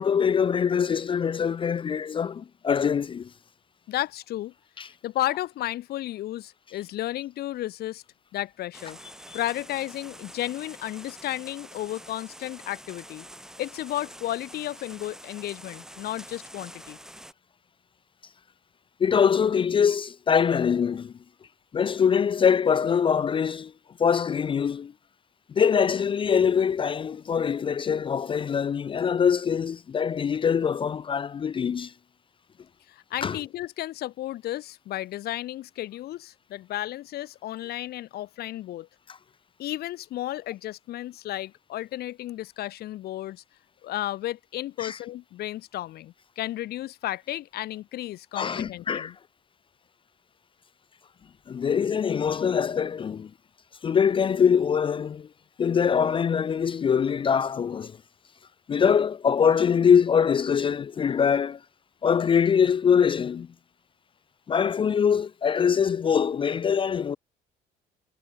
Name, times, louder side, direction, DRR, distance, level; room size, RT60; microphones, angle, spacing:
voice 1, 0.0-3.3 4.8-4.9 9.3-9.4 19.0-21.1 21.7-23.7 24.0-24.9 25.5-31.9 33.2-33.4 44.8-45.0 48.3-49.1 51.5-53.3 53.8-55.3 55.6-58.0 58.7-61.6 62.0-63.5 64.5-67.2, left 7 dB, 30° left, 0.5 m, -23 dB
voice 2, 3.9-4.5 5.0-8.0 8.3-9.0 9.3-13.2 13.6-17.0 32.9-38.9 39.6-43.4 43.8-49.1, left 14 dB, 70° left, 1.4 m, -33 dB
sound 1, 8.7-17.3, right 1 dB, 5° right, 2.9 m, -46 dB
cardioid pair, 110°, 17 cm